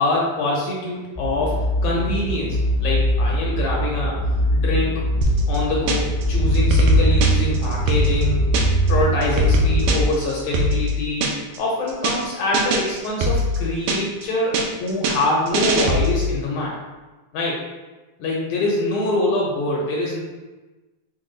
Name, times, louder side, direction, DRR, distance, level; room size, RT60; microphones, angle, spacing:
voice 1, 0.0-1.6 1.8-4.2 4.5-4.9 5.5-8.5 8.9-16.7 17.3-17.6 18.2-20.2, left 2 dB, 75° left, -3 dB, 2.0 m, -24 dB
sound 1, 1.2-10.1, right 1 dB, 40° left, 0.9 m, -21 dB
sound 2, 5.2-6.2 6.5-8.9 9.2-11.6 11.9-12.2 12.5-14.2 14.5-16.3, equal, 85° right, 2.2 m, -22 dB
6.0 x 2.2 x 3.8 m, 1.2 s
omnidirectional pair, 3.7 m